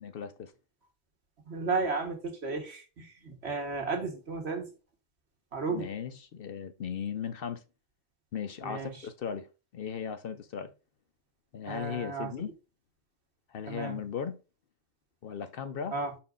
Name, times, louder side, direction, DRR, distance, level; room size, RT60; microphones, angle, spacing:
voice 1, 0.0-0.5 5.7-7.6 8.3-10.7 11.5-12.6 13.5-14.4 15.2-16.0, left 7 dB, 55° left, 0.7 m, -37 dB
voice 2, 1.4-4.7 5.5-5.9 8.6-8.9 11.7-12.3 13.7-14.0 15.9-16.1, right 4 dB, 60° right, 1.7 m, -33 dB
6.0 x 4.4 x 3.7 m
omnidirectional pair, 1.3 m